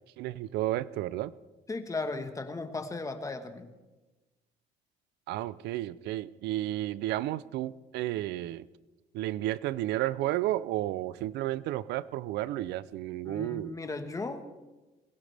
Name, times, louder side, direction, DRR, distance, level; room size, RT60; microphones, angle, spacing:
voice 1, 0.2-1.3 5.3-8.7 9.1-13.7, right 15 dB, 80° right, 19 dB, 0.6 m, -32 dB
voice 2, 1.7-3.7 13.2-14.4, left 3 dB, 20° left, 7 dB, 1.4 m, -36 dB
21.0 x 17.0 x 3.4 m, 1.1 s
cardioid pair, 110°, 17 cm